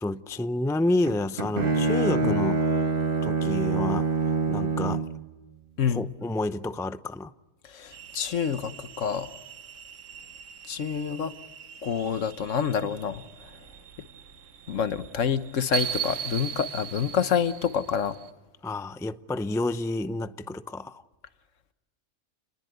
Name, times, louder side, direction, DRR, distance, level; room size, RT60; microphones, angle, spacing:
voice 1, 0.0-2.8 3.2-5.1 5.9-7.3 18.6-21.0, left 2 dB, 5° left, 0.4 m, -29 dB
Bowed string instrument, 1.1-5.2, right 3 dB, 45° right, 1.6 m, -25 dB
voice 2, 5.8-6.1 7.6-9.3 10.7-11.3 11.8-13.2 14.7-18.1, left 7 dB, 75° left, 1.4 m, -27 dB
sound 1, 7.9-18.3, right 9 dB, 75° right, 1.4 m, -39 dB
29.5 x 21.0 x 8.0 m
omnidirectional pair, 1.3 m